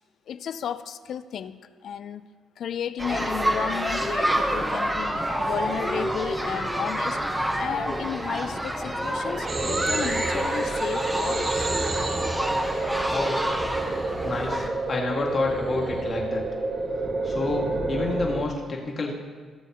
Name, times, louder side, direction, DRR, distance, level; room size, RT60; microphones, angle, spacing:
voice 1, 0.3-2.2 2.6-7.2 7.6-11.7, left 8 dB, 65° left, 13 dB, 0.4 m, -33 dB
sound 1, 3.0-14.7, right 1 dB, 10° right, 1.1 m, -28 dB
sound 2, 9.5-18.4, right 2 dB, 40° right, 1.0 m, -29 dB
voice 2, 13.0-13.4 14.2-16.4 17.2-19.1, left 3 dB, 45° left, -1 dB, 2.0 m, -29 dB
17.0 x 7.1 x 3.0 m, 1.5 s
cardioid pair, 90°, 0 cm